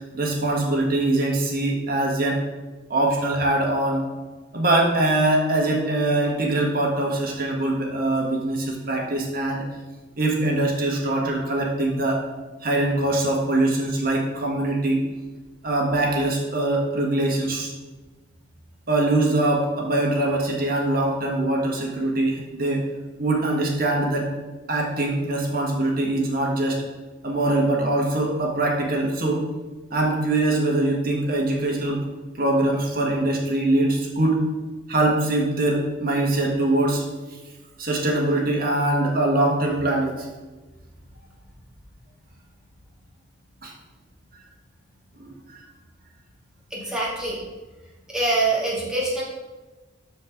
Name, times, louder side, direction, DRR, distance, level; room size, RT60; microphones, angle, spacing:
voice 1, 0.2-2.4 2.9-4.0 4.5-9.6 10.2-12.2 12.6-15.0 15.6-17.7 18.9-22.8 23.2-24.3 24.7-26.8 27.2-29.4 29.9-32.1 32.4-34.4 34.9-37.0 37.8-40.3 43.6-43.7 45.2-45.3, right 2 dB, 50° right, -1 dB, 1.6 m, -23 dB
voice 2, 46.7-47.4 48.1-49.2, right 2 dB, 5° right, -7 dB, 2.1 m, -24 dB
12.5 x 4.7 x 3.6 m, 1.2 s
head